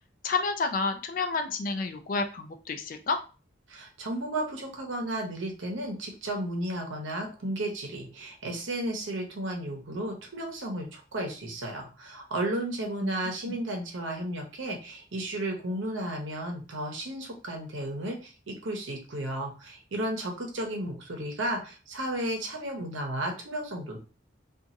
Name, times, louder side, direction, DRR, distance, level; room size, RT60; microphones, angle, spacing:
voice 1, 0.2-3.2 13.0-13.1 13.4-13.6, left 4 dB, 45° left, 7 dB, 0.3 m, -30 dB
voice 2, 3.7-24.0, right 1 dB, 75° right, 2 dB, 0.8 m, -33 dB
2.8 x 2.5 x 2.5 m, 0.34 s
head